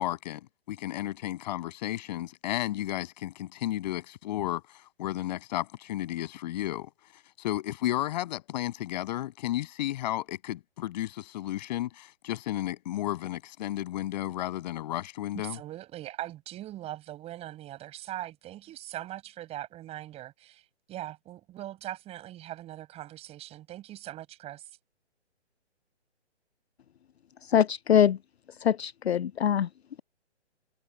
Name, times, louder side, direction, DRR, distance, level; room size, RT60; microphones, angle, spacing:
voice 1, 0.0-4.6 5.0-6.9 7.4-15.6, left 14 dB, 40° left, 7.9 m, -33 dB
voice 2, 15.4-20.6 20.9-24.6, right 14 dB, 15° right, 5.1 m, -41 dB
voice 3, 27.4-28.2 28.6-29.7, left 9 dB, 65° left, 0.6 m, -23 dB
figure-of-eight pair, 140°, 35 cm